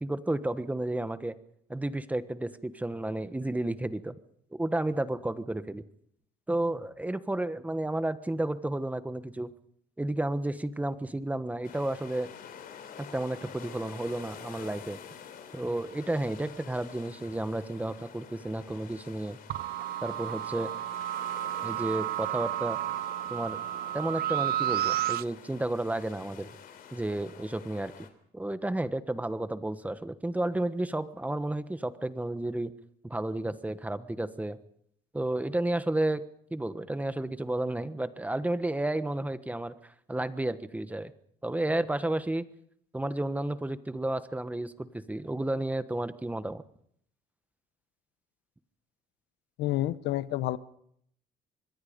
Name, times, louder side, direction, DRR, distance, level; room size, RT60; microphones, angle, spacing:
voice 1, 0.0-1.3 1.7-4.1 4.6-5.8 6.5-9.5 10.0-12.3 13.0-15.0 15.5-19.4 20.0-20.7 21.6-22.8 23.3-23.6 23.9-26.5 26.9-27.9 28.3-32.7 33.0-34.6 35.1-36.2 36.5-41.1 41.4-42.5 42.9-46.6, right 1 dB, 10° right, 12 dB, 1.2 m, -32 dB
sound 1, 11.6-28.1, left 8 dB, 60° left, 3.5 m, -48 dB
sound 2, 19.5-25.2, right 13 dB, 65° right, 0.9 m, -32 dB
voice 2, 49.6-50.6, left 14 dB, 80° left, 15 dB, 1.0 m, -29 dB
25.5 x 21.5 x 5.3 m, 0.69 s
cardioid pair, 110°, 17 cm